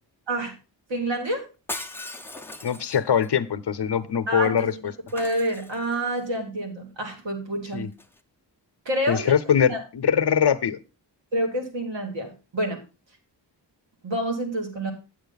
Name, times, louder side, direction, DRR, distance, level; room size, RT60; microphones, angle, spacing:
voice 1, 0.9-1.5 4.3-4.7 5.1-7.9 8.9-9.3 9.7-9.8 11.3-12.8 14.0-14.9, right 1 dB, 75° right, 3 dB, 2.6 m, -28 dB
Shatter, 1.7-3.3 5.1-6.2 7.9-8.2, left 2 dB, 5° left, 0.7 m, -38 dB
voice 2, 2.6-4.7 7.7-7.9 9.1-10.8, left 8 dB, 65° left, 12 dB, 0.8 m, -22 dB
9.0 x 7.8 x 4.0 m, 0.30 s
wide cardioid pair, 105°, 44 cm